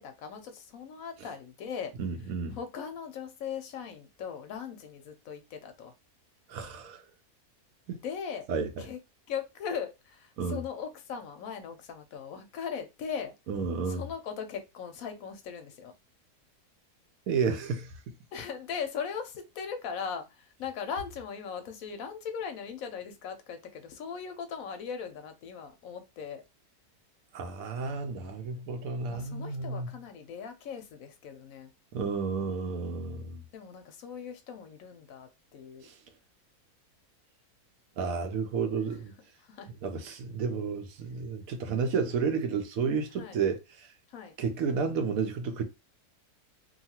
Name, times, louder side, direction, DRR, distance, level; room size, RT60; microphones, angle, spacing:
voice 1, 0.0-1.9 2.5-5.9 8.0-8.5 8.8-9.0 9.3-13.3 13.9-15.9 18.3-26.4 29.1-31.7 33.5-35.9 39.4-39.7 43.2-43.4 44.1-44.4, left 7 dB, 70° left, 0.9 m, -39 dB
voice 2, 2.0-2.6 6.5-7.0 7.9-8.0 8.5-8.8 10.4-10.6 13.5-14.0 17.3-17.9 27.3-29.9 31.9-33.4 35.8-35.9 38.0-39.1 39.8-43.9 44.4-45.6, right 5 dB, 70° right, 1.0 m, -31 dB
2.8 x 2.3 x 2.7 m
omnidirectional pair, 1.6 m